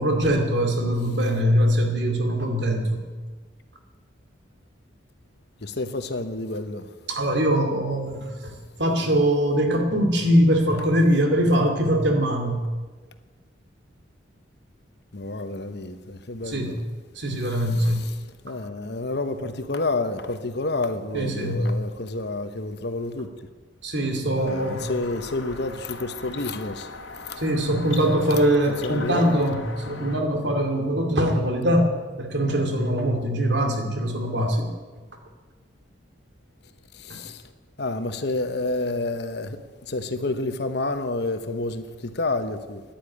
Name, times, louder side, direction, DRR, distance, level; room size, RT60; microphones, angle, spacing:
voice 1, 0.0-3.1 7.1-12.6 16.5-16.8 17.2-18.0 21.1-21.6 23.8-24.9 27.4-34.7 37.1-37.2, equal, 65° right, 2.4 m, -22 dB
voice 2, 5.6-6.9 15.1-16.8 17.6-18.2 18.4-23.3 24.4-26.9 27.2-27.4 28.7-29.4 37.0-37.4 37.8-39.6 39.9-42.8, left 2 dB, 60° left, 1.0 m, -29 dB
sound 1, 24.5-30.2, left 3 dB, 85° left, 1.7 m, -40 dB
10.5 x 10.0 x 9.3 m
head